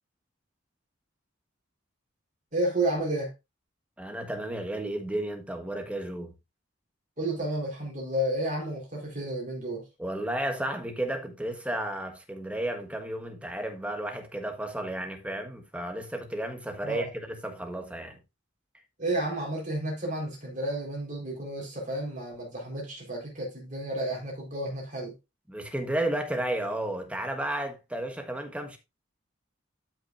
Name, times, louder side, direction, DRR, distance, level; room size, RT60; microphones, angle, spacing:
voice 1, 2.5-3.3 7.2-9.8 16.8-17.1 19.0-25.1, right 1 dB, 40° right, 4.2 m, -31 dB
voice 2, 4.0-6.3 10.0-18.2 25.5-28.8, right 1 dB, 5° right, 1.5 m, -33 dB
12.5 x 6.1 x 2.5 m
head